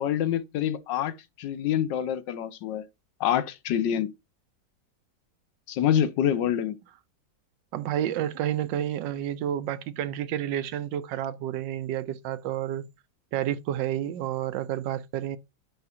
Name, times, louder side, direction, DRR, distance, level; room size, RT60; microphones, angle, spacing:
voice 1, 0.0-2.8 3.2-4.1 5.7-6.7, left 10 dB, 80° left, 1.4 m, -26 dB
voice 2, 7.7-12.9 13.3-15.4, right 11 dB, 90° right, 1.3 m, -30 dB
9.7 x 3.5 x 2.8 m
omnidirectional pair, 1.9 m